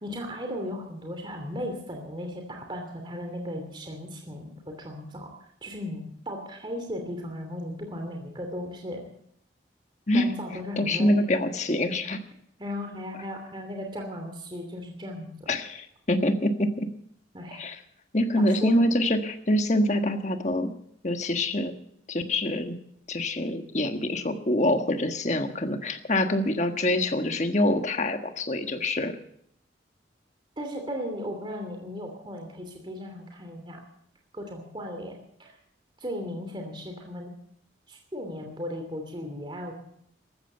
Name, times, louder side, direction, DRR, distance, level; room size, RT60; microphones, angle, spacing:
voice 1, 0.0-5.3 5.6-9.0 10.1-11.1 12.6-15.5 17.3-17.6 18.4-18.9 30.6-33.8 34.3-35.5 36.0-37.3 37.9-39.7, equal, 25° right, 3 dB, 2.9 m, -36 dB
voice 2, 10.8-12.2 15.5-16.9 17.5-17.8 18.1-20.7 21.0-21.7 22.1-22.8 23.1-29.1, left 1 dB, 40° left, 7 dB, 1.4 m, -25 dB
15.0 x 13.5 x 6.8 m, 0.69 s
head